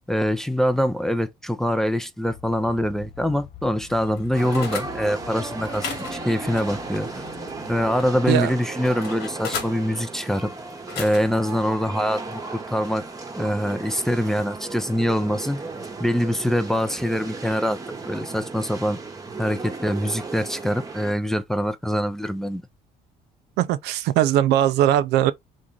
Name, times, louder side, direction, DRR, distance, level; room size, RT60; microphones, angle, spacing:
voice 1, 0.1-7.1 7.7-10.5 11.0-13.0 13.3-15.6 16.0-17.8 18.1-19.0 19.4-22.6, equal, ahead, 0.4 m, -24 dB
sound 1, 2.3-7.9, left 9 dB, 55° left, 0.7 m, -45 dB
sound 2, 3.8-4.9 5.6-7.5 8.0-9.8 10.7-11.5 12.0-12.3, left 6 dB, 85° left, 1.3 m, -36 dB
sound 3, 4.3-21.1, right 3 dB, 20° right, 0.9 m, -35 dB
voice 2, 23.6-25.3, right 12 dB, 80° right, 0.4 m, -20 dB
3.1 x 2.5 x 3.7 m
cardioid pair, 110°, 17 cm